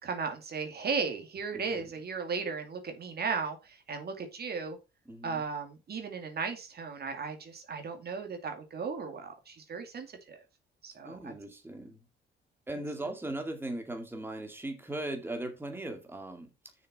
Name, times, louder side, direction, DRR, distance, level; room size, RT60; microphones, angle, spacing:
voice 1, 0.0-4.8 5.2-10.4 10.8-11.3, right 5 dB, 55° right, 2.4 m, -36 dB
voice 2, 1.5-1.9 5.1-5.4 11.1-12.1 12.7-16.7, right 1 dB, 10° right, 2.2 m, -39 dB
6.7 x 6.6 x 5.4 m
cardioid pair, 90°, 20 cm